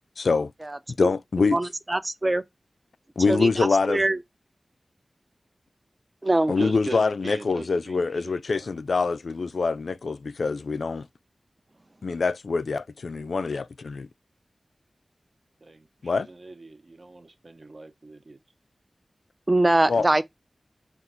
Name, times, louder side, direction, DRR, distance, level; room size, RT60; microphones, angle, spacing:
voice 1, 0.2-0.5 1.0-1.6 3.2-4.0 6.5-11.1 12.0-14.1 16.0-16.3 19.9-20.1, left 4 dB, 85° left, 0.3 m, -25 dB
voice 2, 1.5-2.4 3.3-4.2 6.2-6.5 19.5-20.2, right 2 dB, 25° right, 0.5 m, -23 dB
voice 3, 6.6-8.7 15.6-15.9 16.1-18.4, right 2 dB, 55° right, 0.8 m, -39 dB
4.5 x 2.4 x 3.7 m
wide cardioid pair, 90°, 0 cm